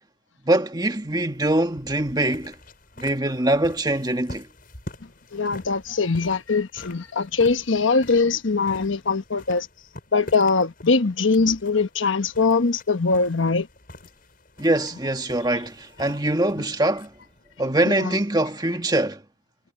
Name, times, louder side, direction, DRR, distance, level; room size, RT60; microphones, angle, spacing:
voice 1, 0.4-2.5 3.0-4.5 14.6-17.1 17.6-19.2, right 1 dB, 20° right, 1.7 m, -23 dB
sound 1, 1.0-18.6, left 1 dB, 45° left, 7.6 m, -46 dB
voice 2, 5.3-9.7 10.1-13.7 17.9-18.2, left 4 dB, 80° left, 1.1 m, -22 dB
head